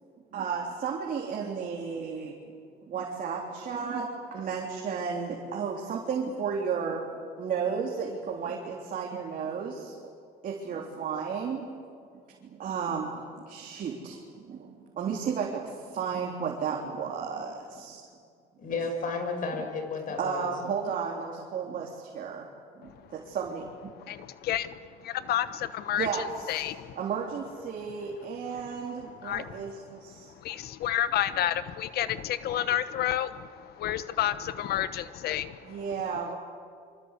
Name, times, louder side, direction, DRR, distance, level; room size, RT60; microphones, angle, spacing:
voice 1, 0.3-2.4 2.9-7.1 7.4-10.0 10.4-11.7 12.4-18.0 20.2-22.5 22.7-23.9 25.9-26.6 27.0-30.3 35.6-36.3, right 6 dB, 55° right, -1 dB, 3.5 m, -33 dB
voice 2, 18.6-20.5, left 4 dB, 55° left, 5 dB, 6.1 m, -32 dB
voice 3, 24.0-27.0 29.2-29.6 30.2-35.8, left 11 dB, 70° left, 13 dB, 1.1 m, -30 dB
26.5 x 25.0 x 8.3 m, 2.2 s
cardioid pair, 110°, 17 cm